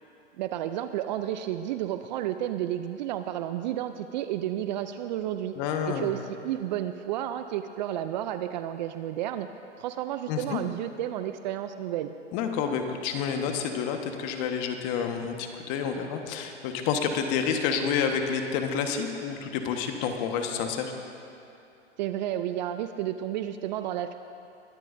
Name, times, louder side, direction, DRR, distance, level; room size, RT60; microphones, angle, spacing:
voice 1, 0.4-5.5 5.9-9.5 9.8-12.1 22.0-24.2, right 12 dB, 40° right, 10 dB, 0.4 m, -31 dB
voice 2, 5.6-6.1 10.3-10.6 12.3-20.9, left 7 dB, 40° left, 4 dB, 1.4 m, -29 dB
22.0 x 12.0 x 2.6 m, 2.8 s
hypercardioid pair, 125°, 37 cm